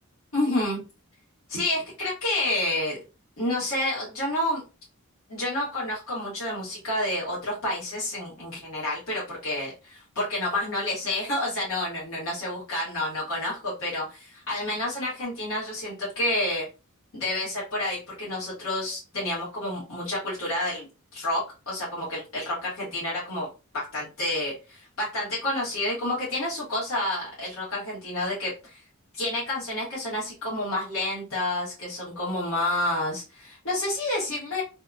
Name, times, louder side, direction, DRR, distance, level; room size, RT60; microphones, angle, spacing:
voice 1, 0.3-0.8 1.5-3.0 3.4-4.6 5.3-16.7 17.1-20.9 21.1-23.5 23.7-28.8 29.1-34.6, left 1 dB, 70° left, -7 dB, 1.1 m, -29 dB
2.8 x 2.1 x 2.3 m, 0.31 s
head